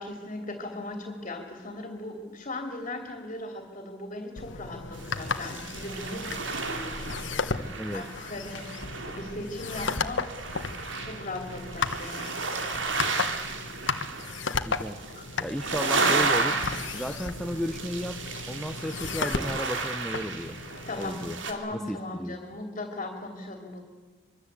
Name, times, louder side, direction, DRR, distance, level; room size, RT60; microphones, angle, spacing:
voice 1, 0.0-10.3 11.0-12.4 15.1-15.3 20.9-23.8, left 2 dB, 40° left, 4 dB, 3.2 m, -38 dB
sound 1, 4.4-21.3, left 4 dB, 80° left, 1.4 m, -35 dB
sound 2, 4.9-21.5, right 4 dB, 85° right, 3.0 m, -33 dB
voice 2, 14.6-15.0 15.4-16.6 16.9-18.2 18.5-20.6 21.0-21.4 21.7-22.4, equal, ahead, 6 dB, 1.0 m, -33 dB
25.0 x 23.0 x 8.4 m, 1.4 s
head